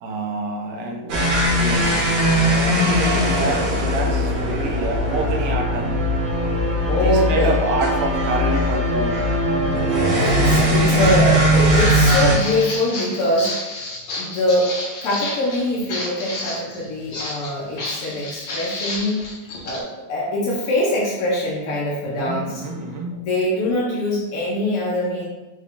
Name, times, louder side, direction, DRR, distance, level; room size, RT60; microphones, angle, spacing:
voice 1, 0.0-2.0 2.4-6.0 6.9-9.2 10.4-11.3 22.0-23.2, right 2 dB, 70° right, 2 dB, 1.0 m, -28 dB
sound 1, 1.1-12.4, equal, 85° right, 2.0 m, -19 dB
voice 2, 6.9-7.5 10.2-13.5 14.2-14.7 15.0-19.2 19.6-22.6 23.2-25.2, left 1 dB, 65° left, -5 dB, 0.9 m, -23 dB
Walk footsteps, 11.5-19.8, left 2 dB, 85° left, 1.9 m, -31 dB
4.9 x 2.2 x 3.6 m, 1.1 s
omnidirectional pair, 2.4 m